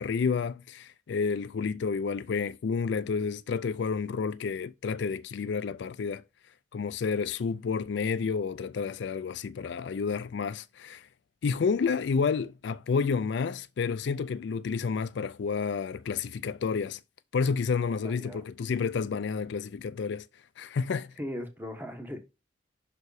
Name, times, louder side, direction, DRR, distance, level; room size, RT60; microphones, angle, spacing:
voice 1, 0.0-6.2 6.7-11.1 11.4-17.0 17.3-20.3 20.6-21.1, left 5 dB, 65° left, 0.4 m, -30 dB
voice 2, 18.0-18.4 21.2-22.2, equal, 10° right, 1.1 m, -38 dB
5.8 x 4.7 x 4.7 m
head